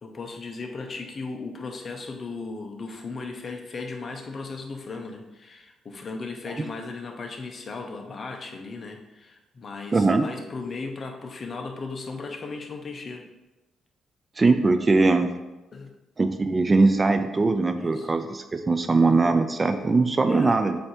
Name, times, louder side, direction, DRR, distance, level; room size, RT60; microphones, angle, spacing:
voice 1, 0.0-13.2 15.7-15.9 17.8-18.1 20.3-20.6, left 4 dB, 40° left, 3 dB, 0.9 m, -36 dB
voice 2, 9.9-10.3 14.4-15.4 16.2-20.8, right 3 dB, 30° right, 8 dB, 0.4 m, -21 dB
7.6 x 2.8 x 4.6 m, 1.1 s
cardioid pair, 90°, 0 cm